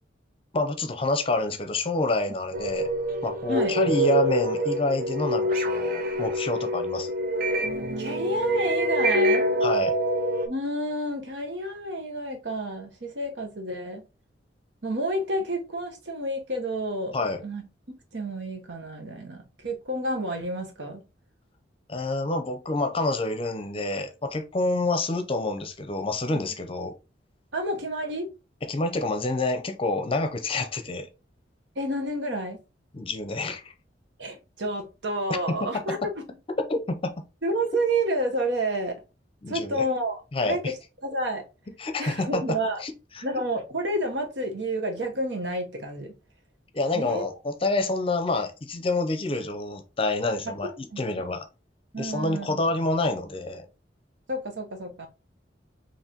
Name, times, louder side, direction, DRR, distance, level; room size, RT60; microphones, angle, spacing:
voice 1, 0.5-2.9 3.2-7.1 9.6-9.9 17.1-17.4 21.9-26.9 28.6-31.1 32.9-33.7 35.3-35.4 36.7-37.1 39.4-39.9 40.3-40.7 41.8-43.2 46.7-51.5 52.0-53.7, left 2 dB, 30° left, 0.6 m, -28 dB
sound 1, 2.5-10.5, equal, 50° right, 0.6 m, -26 dB
voice 2, 8.0-9.4 10.4-14.0 14.8-17.2 17.4-17.6 18.1-21.0 27.5-28.3 31.8-32.6 34.2-36.2 37.4-39.0 39.5-40.2 40.5-40.7 41.0-41.4 42.0-42.8 43.2-46.1 46.9-47.3 50.4-50.5 50.9-51.0 51.9-52.6 54.3-55.1, right 1 dB, 75° right, 1.0 m, -29 dB
4.8 x 3.0 x 2.9 m
head